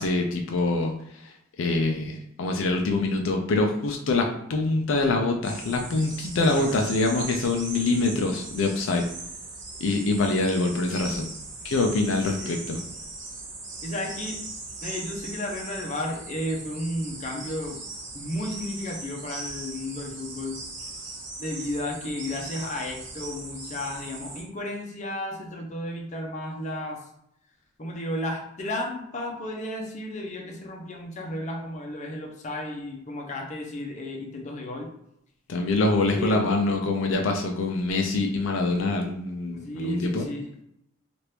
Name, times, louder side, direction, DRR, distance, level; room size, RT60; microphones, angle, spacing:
voice 1, 0.0-9.0 9.8-11.3 11.6-12.8 35.5-40.3, left 2 dB, 80° left, 2 dB, 0.4 m, -25 dB
sound 1, 5.4-24.4, right 3 dB, 65° right, 1.1 m, -39 dB
voice 2, 13.8-14.4 14.8-17.8 18.1-20.6 21.4-27.0 27.8-34.9 36.2-36.5 39.5-40.5, left 1 dB, 40° left, 0 dB, 0.6 m, -33 dB
2.9 x 2.5 x 3.3 m, 0.75 s
head